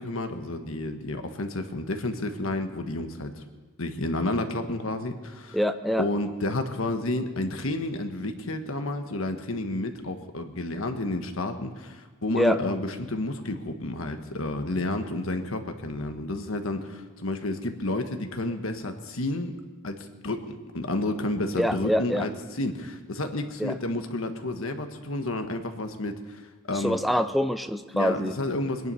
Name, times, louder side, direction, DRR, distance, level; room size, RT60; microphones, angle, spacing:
voice 1, 0.0-3.4 3.8-5.6 6.0-19.6 19.8-26.4 26.7-27.0 27.9-28.9, left 2 dB, 75° left, 6 dB, 1.3 m, -31 dB
voice 2, 5.5-6.1 12.4-12.6 21.6-22.3 23.6-23.7 26.7-28.3, equal, ahead, 9 dB, 0.5 m, -25 dB
22.0 x 11.0 x 5.5 m, 1.3 s
head